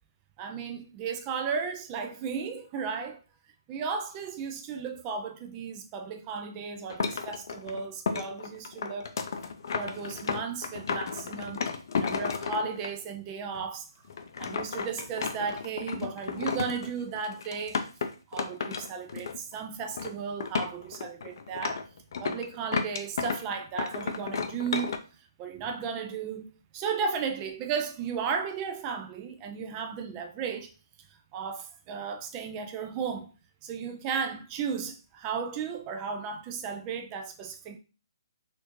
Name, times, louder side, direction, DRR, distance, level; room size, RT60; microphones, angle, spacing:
voice 1, 0.4-3.2 3.7-9.2 9.7-11.6 12.0-13.9 14.4-17.8 18.3-21.8 22.2-30.7 31.0-33.3 33.6-37.8, right 6 dB, 20° right, 0.3 m, -35 dB
sound 1, 6.9-12.9 13.5-13.6 14.1-19.5 19.8-20.1 20.4-23.4 23.8-25.0, left 5 dB, 55° left, 0.5 m, -33 dB
4.2 x 2.5 x 3.0 m
hypercardioid pair, 160°, 3 cm